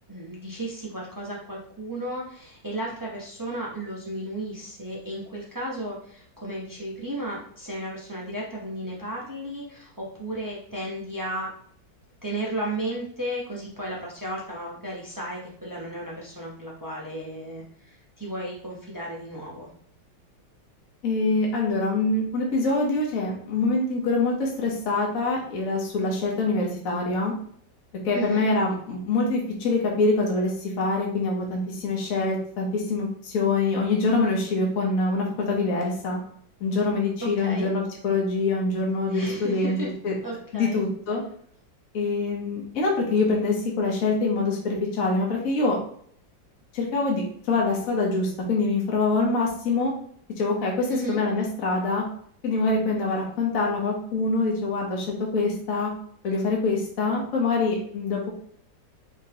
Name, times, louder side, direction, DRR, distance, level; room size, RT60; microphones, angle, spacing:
voice 1, 0.1-11.5 12.2-19.7 28.1-28.5 37.2-37.7 39.1-39.9 40.2-40.8 50.9-51.2, right 1 dB, 25° right, -4 dB, 0.4 m, -34 dB
voice 2, 21.0-27.3 28.0-36.2 36.6-39.8 40.0-40.1 40.5-41.2 41.9-45.8 46.7-49.9 50.4-52.0 52.4-55.9 56.2-58.3, left 3 dB, 55° left, -2 dB, 1.3 m, -25 dB
3.9 x 3.7 x 2.9 m, 0.62 s
omnidirectional pair, 2.0 m